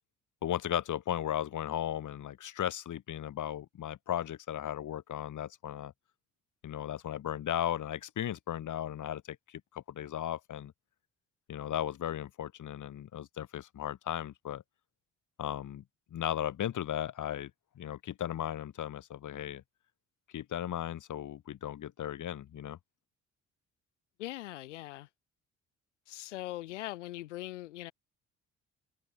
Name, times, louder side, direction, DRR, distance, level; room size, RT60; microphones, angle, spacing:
voice 1, 0.4-5.9 6.6-10.7 11.5-14.6 15.4-15.8 16.1-17.5 17.8-19.6 20.3-22.8, left 11 dB, 55° left, 3.3 m, -36 dB
voice 2, 24.2-25.1 26.1-27.9, left 16 dB, 85° left, 1.7 m, -41 dB
hypercardioid pair, 50°, 35 cm